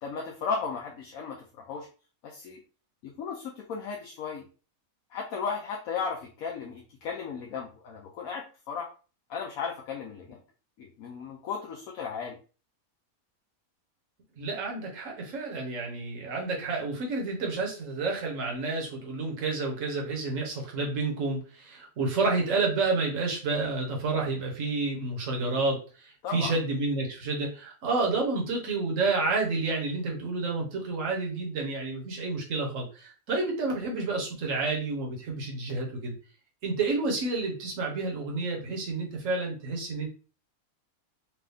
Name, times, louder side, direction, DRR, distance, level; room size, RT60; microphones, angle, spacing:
voice 1, 0.0-1.9 2.2-2.6 3.0-4.5 5.1-8.9 9.3-10.4 10.8-12.4 26.2-26.5, left 5 dB, 75° left, 0 dB, 1.2 m, -35 dB
voice 2, 14.4-36.2 36.6-40.1, right 3 dB, 65° right, 0 dB, 1.5 m, -30 dB
4.7 x 2.5 x 3.4 m, 0.36 s
omnidirectional pair, 1.5 m